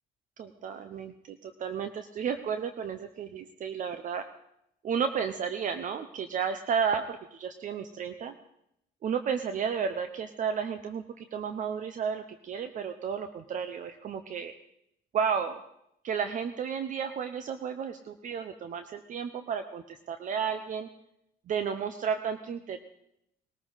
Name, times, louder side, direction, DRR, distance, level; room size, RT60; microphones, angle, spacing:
voice 1, 0.4-4.2 4.8-8.3 9.0-14.5 15.1-15.6 16.0-20.9 21.5-22.8, right 7 dB, 50° right, 9 dB, 0.9 m, -32 dB
20.5 x 14.0 x 4.1 m, 0.78 s
cardioid pair, 110°, 17 cm